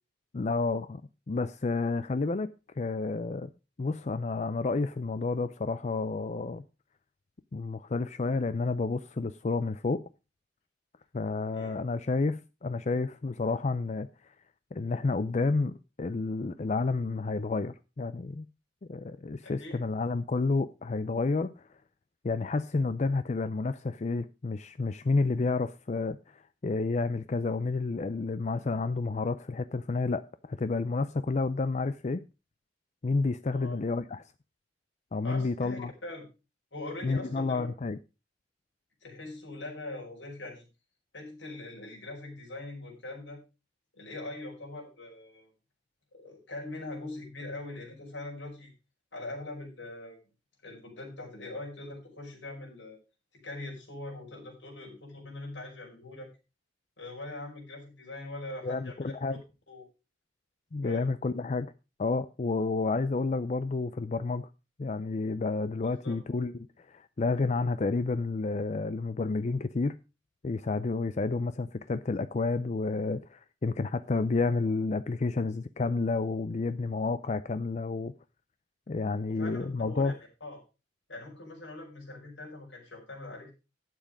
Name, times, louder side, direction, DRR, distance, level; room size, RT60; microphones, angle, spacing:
voice 1, 0.3-1.0 1.3-3.5 3.8-6.6 7.5-10.1 11.1-14.1 14.7-18.5 18.9-21.7 22.2-32.2 33.0-34.2 35.1-35.9 37.0-38.0 58.6-59.4 60.7-61.7 62.0-64.5 64.8-70.0 70.4-78.1 78.9-80.1, left 3 dB, 40° left, 0.5 m, -30 dB
voice 2, 19.4-19.8 33.5-33.8 35.2-36.3 36.7-37.7 39.0-40.6 41.1-43.4 43.9-45.5 46.1-48.7 49.1-50.2 50.6-53.0 53.4-56.3 57.0-59.1 59.7-59.9 60.8-61.0 65.8-66.2 79.3-80.1 80.4-80.6 81.1-83.5, left 2 dB, 90° left, 5.2 m, -42 dB
11.5 x 7.4 x 5.0 m
head